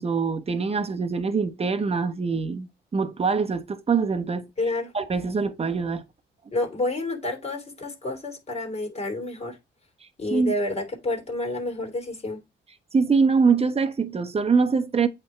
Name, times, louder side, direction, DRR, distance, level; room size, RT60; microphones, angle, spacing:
voice 1, 0.0-4.5 4.9-6.0 10.3-10.5 12.9-15.1, right 5 dB, 30° right, 1.2 m, -24 dB
voice 2, 4.6-4.9 6.5-9.6 10.2-12.4, left 2 dB, 30° left, 3.1 m, -29 dB
8.5 x 3.6 x 4.5 m
cardioid pair, 90°, 20 cm